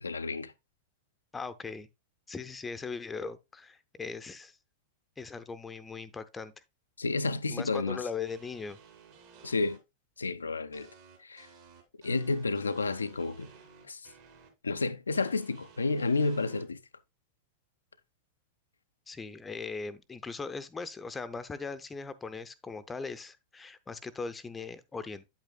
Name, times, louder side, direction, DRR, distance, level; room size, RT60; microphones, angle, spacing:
voice 1, 0.0-0.5 7.0-8.0 9.4-9.8 10.2-10.9 11.2-11.5 12.0-13.5 13.9-14.0 14.6-16.8, left 3 dB, 75° left, 0.4 m, -30 dB
voice 2, 1.3-1.9 2.3-4.6 5.2-6.5 7.5-8.8 19.1-25.3, left 4 dB, 15° left, 0.7 m, -39 dB
sound 1, 8.3-9.8 10.7-14.5 15.1-16.6, right 6 dB, 50° right, 3.1 m, -55 dB
8.8 x 8.1 x 2.2 m
figure-of-eight pair, 90°, 0 cm